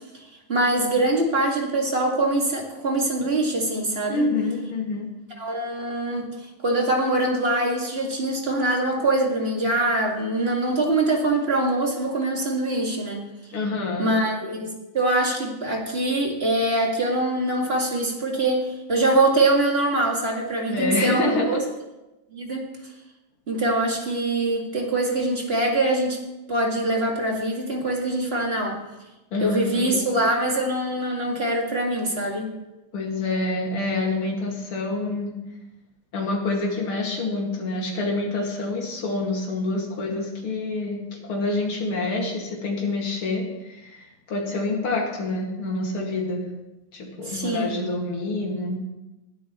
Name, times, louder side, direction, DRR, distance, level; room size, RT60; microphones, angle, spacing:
voice 1, 0.5-4.3 5.4-6.3 6.6-13.2 14.0-21.6 22.3-22.7 23.5-26.2 26.5-28.8 29.4-32.5 47.2-47.8, right 2 dB, 30° right, 0 dB, 2.2 m, -23 dB
voice 2, 4.1-5.1 13.5-14.1 20.7-21.6 29.3-30.0 32.9-35.3 36.1-46.4 46.9-48.8, left 2 dB, 85° left, -1 dB, 3.0 m, -27 dB
20.0 x 12.5 x 3.1 m, 1.0 s
omnidirectional pair, 2.3 m